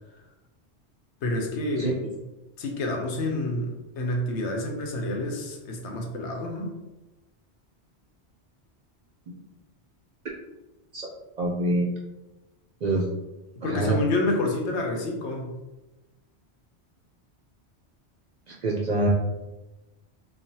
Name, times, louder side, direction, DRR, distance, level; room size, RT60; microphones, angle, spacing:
voice 1, 1.2-2.0 2.6-6.7 13.6-15.5, left 2 dB, 90° left, 2 dB, 0.9 m, -28 dB
voice 2, 11.4-11.9 12.8-13.1 13.6-14.0 18.5-19.1, right 2 dB, 55° right, -3 dB, 0.5 m, -25 dB
3.2 x 2.1 x 2.7 m, 1.0 s
omnidirectional pair, 1.1 m